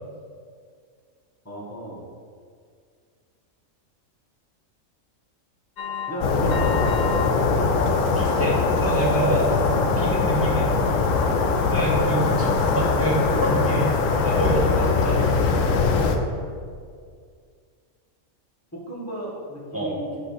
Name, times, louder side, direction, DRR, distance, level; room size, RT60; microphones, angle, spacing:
voice 1, 1.4-2.0 6.1-6.9 18.7-20.2, right 1 dB, 10° left, -5 dB, 1.5 m, -33 dB
sound 1, 5.8-7.3 7.7-8.3 8.7-9.0 9.4-9.5, left 7 dB, 85° left, 0.4 m, -33 dB
sound 2, 6.2-16.2, left 4 dB, 70° left, 1.0 m, -21 dB
voice 2, 8.2-9.5 10.0-10.7 11.7-13.9 14.2-15.2 19.7-19.9, right 1 dB, 10° right, -5 dB, 1.4 m, -26 dB
8.8 x 3.5 x 6.5 m, 2.1 s
omnidirectional pair, 1.4 m